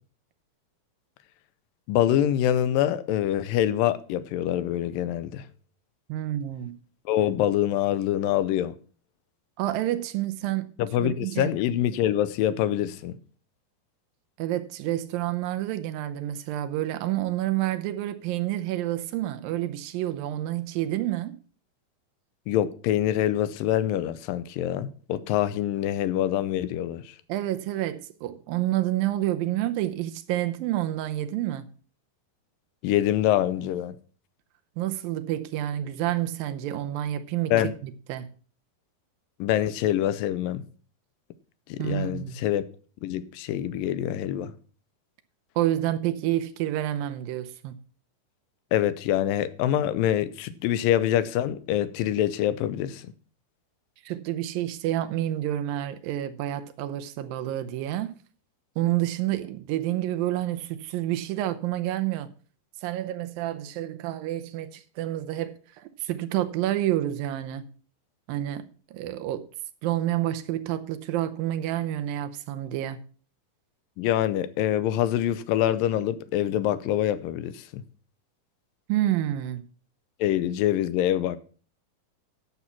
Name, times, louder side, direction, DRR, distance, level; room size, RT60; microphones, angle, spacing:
voice 1, 1.9-5.5 7.1-8.7 10.8-13.1 22.5-27.0 32.8-34.0 37.5-37.7 39.4-40.6 41.7-42.6 43.0-44.5 48.7-53.1 74.0-77.6 80.2-81.4, left 12 dB, 80° left, 2.3 m, -25 dB
voice 2, 6.1-6.7 9.6-10.7 11.0-11.5 14.4-21.4 27.3-31.7 34.8-37.5 37.8-38.3 41.8-42.4 45.6-47.8 54.1-58.1 58.8-62.3 62.8-67.7 68.3-68.6 68.9-69.5 69.8-73.0 78.9-79.6, right 13 dB, 85° right, 2.5 m, -29 dB
10.5 x 6.9 x 5.8 m
omnidirectional pair, 4.1 m